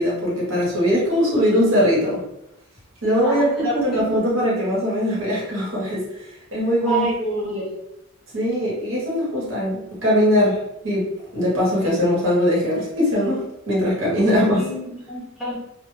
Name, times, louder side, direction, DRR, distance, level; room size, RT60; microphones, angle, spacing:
voice 1, 0.0-2.2 3.0-6.0 6.5-7.1 8.3-10.6 10.8-14.6, equal, 65° right, -5 dB, 1.1 m, -21 dB
voice 2, 3.2-4.0 6.8-7.7 14.6-15.6, right 2 dB, ahead, -8 dB, 0.6 m, -27 dB
2.2 x 2.1 x 3.1 m, 0.84 s
head